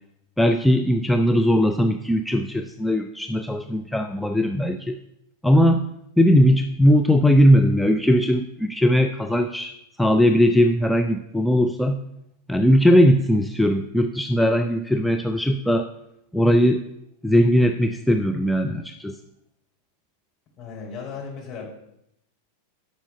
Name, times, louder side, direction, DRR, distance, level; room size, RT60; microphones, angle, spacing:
voice 1, 0.4-5.0 5.4-5.9 6.2-12.0 12.5-15.9 16.3-16.8 17.2-19.2, equal, ahead, 4 dB, 0.5 m, -19 dB
voice 2, 20.6-21.7, left 5 dB, 35° left, -1 dB, 3.8 m, -35 dB
9.9 x 5.6 x 6.5 m, 0.80 s
figure-of-eight pair, 90°, 0 cm